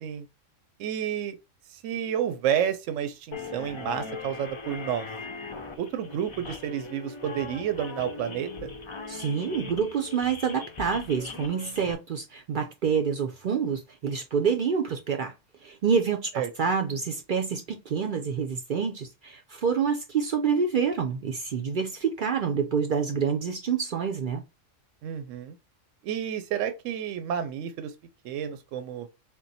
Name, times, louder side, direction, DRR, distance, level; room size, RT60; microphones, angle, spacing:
voice 1, 0.8-1.4 1.7-5.1 5.8-8.7 16.3-16.5 25.0-25.6 26.0-27.9 28.2-29.1, right 9 dB, 80° right, 0.9 m, -30 dB
sound 1, 3.3-11.9, left 4 dB, 50° left, 0.3 m, -40 dB
voice 2, 9.1-15.3 15.6-24.4, right 6 dB, 60° right, 0.5 m, -27 dB
3.7 x 2.3 x 4.0 m
omnidirectional pair, 1.3 m